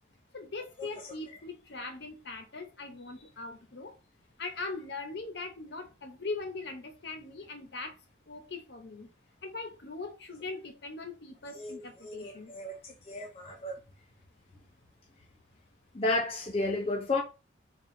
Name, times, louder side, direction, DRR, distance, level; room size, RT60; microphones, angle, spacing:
voice 1, 0.3-3.9 4.4-8.0 8.3-9.1 9.4-12.5, left 3 dB, 55° left, 0.8 m, -40 dB
voice 2, 11.6-12.8 13.1-13.7 15.9-17.2, left 2 dB, 30° left, 0.5 m, -32 dB
4.2 x 2.4 x 3.7 m
head